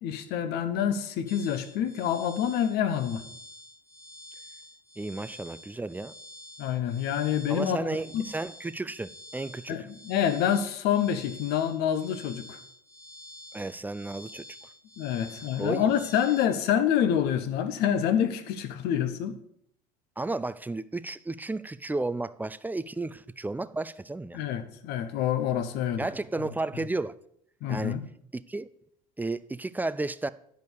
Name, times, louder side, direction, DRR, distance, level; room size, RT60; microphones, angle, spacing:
voice 1, 0.0-3.2 6.6-7.9 8.1-8.3 9.7-12.6 15.0-19.3 24.3-26.1 27.6-28.0, left 9 dB, 60° left, 1.0 m, -27 dB
sound 1, 1.3-16.5, left 1 dB, 15° left, 1.6 m, -48 dB
voice 2, 5.0-6.1 7.5-9.9 13.5-14.4 15.6-15.9 20.2-24.4 26.0-27.1 27.7-28.0 28.3-28.7 29.2-30.3, right 2 dB, 10° right, 0.4 m, -33 dB
10.5 x 5.2 x 6.4 m
hypercardioid pair, 70°, 18 cm